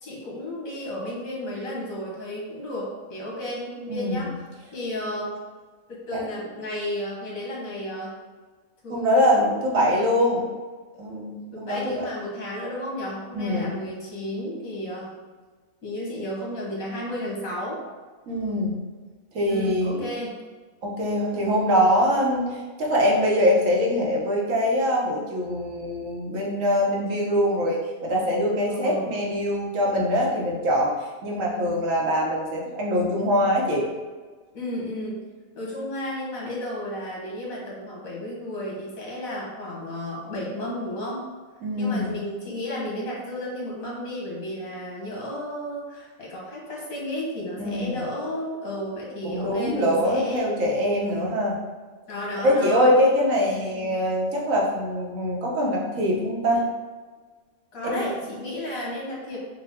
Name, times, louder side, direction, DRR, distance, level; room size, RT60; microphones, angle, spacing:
voice 1, 0.0-4.3 4.7-5.4 5.9-8.1 8.8-10.0 11.5-15.1 15.8-17.8 19.5-20.4 28.7-29.1 34.5-35.2 35.5-41.2 41.8-50.5 51.0-51.3 52.1-52.9 53.7-53.9 57.7-59.4, left 1 dB, 80° left, -4 dB, 1.7 m, -33 dB
voice 2, 3.9-4.3 6.1-6.2 8.9-10.5 11.0-12.1 13.3-13.7 18.3-18.7 19.3-20.0 20.8-30.9 31.2-33.9 41.6-42.2 47.6-48.0 49.2-51.6 52.4-56.6 57.8-58.1, equal, 70° right, -3 dB, 1.3 m, -23 dB
5.7 x 2.2 x 3.5 m, 1.4 s
omnidirectional pair, 1.4 m